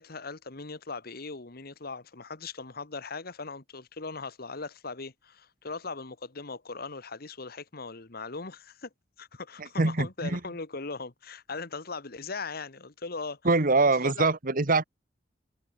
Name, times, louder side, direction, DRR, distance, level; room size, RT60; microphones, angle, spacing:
voice 1, 0.0-8.9 9.2-13.4 13.8-14.3, left 4 dB, 55° left, 1.6 m, -39 dB
voice 2, 9.6-10.4 13.4-14.8, right 3 dB, 50° right, 1.5 m, -24 dB
head